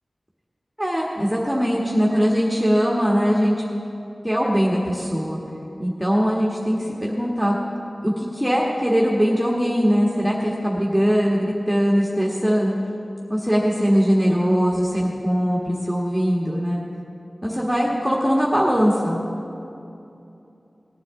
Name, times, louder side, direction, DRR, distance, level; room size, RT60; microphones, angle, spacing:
voice 1, 0.8-3.5 4.2-5.4 5.8-7.5 8.0-12.7 13.3-16.8 17.4-19.2, equal, 5° right, -4 dB, 1.5 m, -21 dB
18.5 x 9.7 x 3.7 m, 2.8 s
wide cardioid pair, 55°, 0 cm